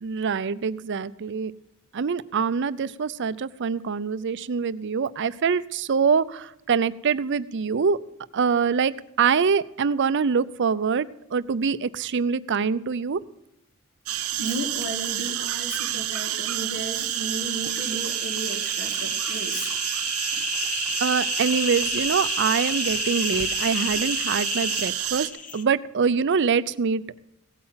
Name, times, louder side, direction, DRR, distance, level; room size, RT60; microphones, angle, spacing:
voice 1, 0.0-1.5 1.9-8.0 8.3-13.2 21.0-27.2, right 6 dB, 55° right, 16 dB, 0.5 m, -24 dB
sound 1, 14.1-25.3, right 12 dB, 80° right, 0.8 m, -29 dB
voice 2, 14.4-19.7, right 1 dB, 55° left, 3 dB, 2.1 m, -34 dB
sound 2, 17.1-25.6, left 6 dB, 35° left, 1.0 m, -32 dB
17.0 x 8.7 x 5.7 m, 0.83 s
head